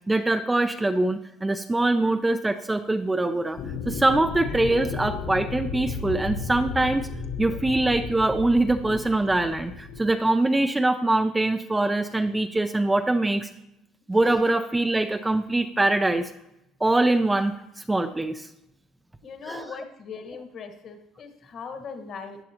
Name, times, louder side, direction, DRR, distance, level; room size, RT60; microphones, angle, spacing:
voice 1, 0.1-3.6 3.9-7.1 7.4-13.5 14.1-16.3 16.8-17.5 17.9-18.5 19.5-19.7, right 2 dB, 10° right, 7 dB, 0.4 m, -23 dB
sound 1, 3.6-10.1, left 5 dB, 65° left, 1.2 m, -34 dB
voice 2, 19.2-22.4, left 5 dB, 40° left, 7 dB, 1.3 m, -39 dB
16.0 x 10.5 x 2.9 m, 0.86 s
cardioid pair, 160°, 0 cm